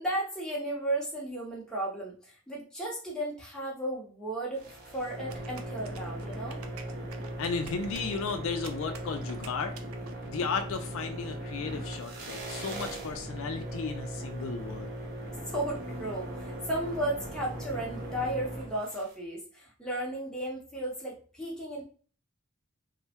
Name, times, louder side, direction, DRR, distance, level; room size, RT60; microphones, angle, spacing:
voice 1, 0.0-4.6 4.9-6.6 10.4-10.6 15.5-21.8, right 1 dB, 5° left, -4 dB, 0.7 m, -34 dB
sound 1, 4.5-19.1, right 1 dB, 40° right, 0.7 m, -39 dB
sound 2, 5.3-10.6, right 6 dB, 80° right, 0.4 m, -49 dB
voice 2, 7.4-9.7 10.3-14.9, left 5 dB, 70° left, 7 dB, 0.3 m, -34 dB
3.2 x 2.1 x 2.8 m, 0.41 s
head